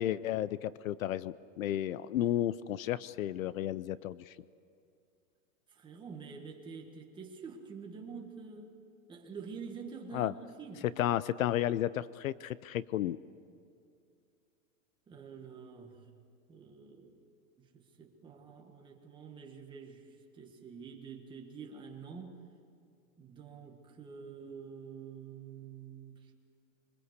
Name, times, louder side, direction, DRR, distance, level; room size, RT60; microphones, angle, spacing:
voice 1, 0.0-4.3 10.1-10.3 11.0-13.2, left 12 dB, 65° left, 18 dB, 0.7 m, -33 dB
voice 2, 5.7-8.7 9.1-10.9 15.1-16.0 16.5-17.2 17.6-20.0 20.3-22.4 23.2-26.3, right 5 dB, 10° right, 1 dB, 1.7 m, -47 dB
26.0 x 24.0 x 8.2 m, 2.4 s
supercardioid pair, 175°, 44 cm